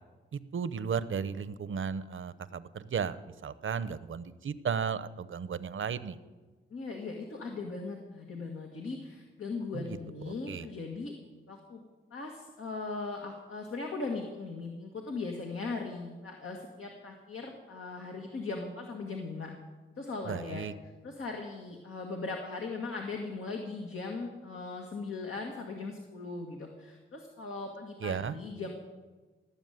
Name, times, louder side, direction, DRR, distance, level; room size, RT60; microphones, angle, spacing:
voice 1, 0.3-6.2 9.7-9.8 10.5-10.7 20.3-20.7 28.0-28.3, right 6 dB, 70° right, 15 dB, 0.8 m, -34 dB
voice 2, 6.7-11.1 11.5-11.8 12.1-19.5 20.0-20.6 21.0-28.7, left 3 dB, 85° left, 1 dB, 1.9 m, -39 dB
18.5 x 7.2 x 9.3 m, 1.3 s
cardioid pair, 60°, 21 cm